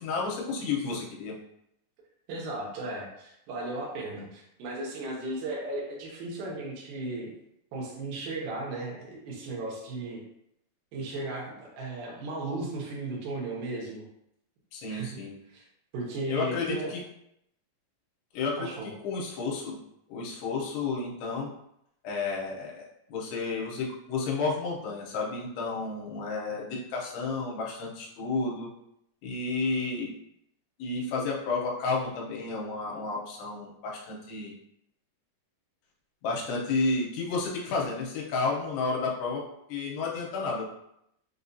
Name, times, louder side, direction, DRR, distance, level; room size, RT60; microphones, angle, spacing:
voice 1, 0.0-1.4 14.7-15.4 16.3-17.0 18.3-19.8 20.1-21.5 22.0-28.7 29.2-30.1 30.8-34.5 36.2-39.4 39.7-40.6, left 4 dB, 80° left, -2 dB, 2.8 m, -31 dB
voice 2, 2.3-7.3 7.7-10.2 10.9-14.0 14.9-15.2 15.5-15.6 15.9-16.9 18.6-18.9, right 2 dB, 70° right, -3 dB, 2.0 m, -35 dB
6.4 x 2.4 x 2.7 m, 0.78 s
omnidirectional pair, 4.9 m